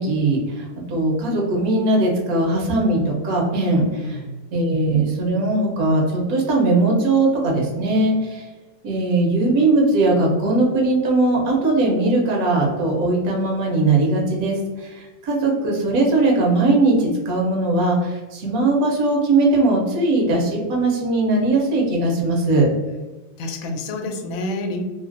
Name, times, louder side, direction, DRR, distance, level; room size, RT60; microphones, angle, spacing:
voice 1, 0.0-4.2 4.5-8.4 8.8-22.7, right 2 dB, 60° right, -1 dB, 1.1 m, -19 dB
voice 2, 4.0-4.3 23.4-24.8, left 2 dB, 85° left, 4 dB, 1.3 m, -28 dB
3.1 x 2.4 x 2.4 m, 1.2 s
omnidirectional pair, 2.0 m